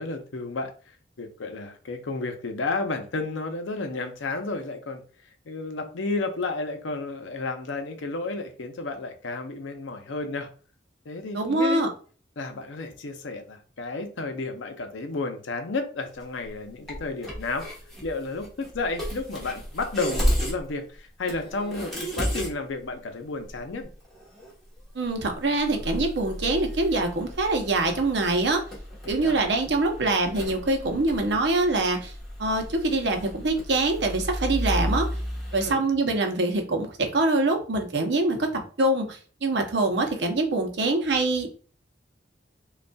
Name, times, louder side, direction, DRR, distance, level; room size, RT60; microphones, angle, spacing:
voice 1, 0.0-5.0 5.5-10.5 11.1-11.8 12.4-17.7 18.0-23.9 29.0-29.4 35.5-35.8, left 3 dB, 80° left, 6 dB, 0.6 m, -32 dB
voice 2, 11.3-11.9 24.9-28.6 29.1-32.1 32.4-35.1 35.5-41.5, right 2 dB, 65° right, 4 dB, 0.7 m, -24 dB
sound 1, 16.2-16.5 16.9-20.7 21.0-21.1 21.3-22.5 22.8-22.9 23.4-24.5 24.8-24.9 25.1-35.7, equal, ahead, 1.1 m, -33 dB
5.1 x 2.3 x 2.3 m, 0.40 s
head